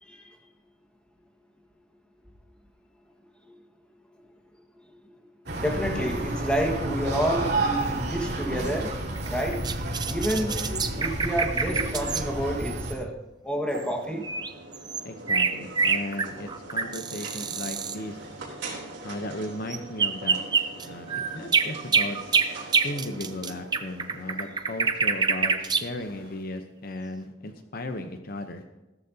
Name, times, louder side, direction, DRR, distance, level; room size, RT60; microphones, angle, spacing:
voice 1, 0.0-0.3 3.4-3.5 4.8-4.9 5.6-8.9 9.3-9.6 10.1-10.6 11.0-13.1 13.4-14.2, equal, 5° left, 1 dB, 1.6 m, -29 dB
sound 1, 5.5-13.0, right 2 dB, 55° right, 3.1 m, -30 dB
sound 2, 8.6-12.2 13.8-13.9 14.2-18.0 19.7-25.9, right 5 dB, 20° right, 0.6 m, -26 dB
sound 3, 13.7-26.3, right 2 dB, 75° right, 3.8 m, -43 dB
voice 2, 15.0-18.2 19.0-20.4 20.8-22.2 22.8-28.6, left 1 dB, 50° left, 7 dB, 0.8 m, -36 dB
15.0 x 13.5 x 2.8 m, 1.0 s
head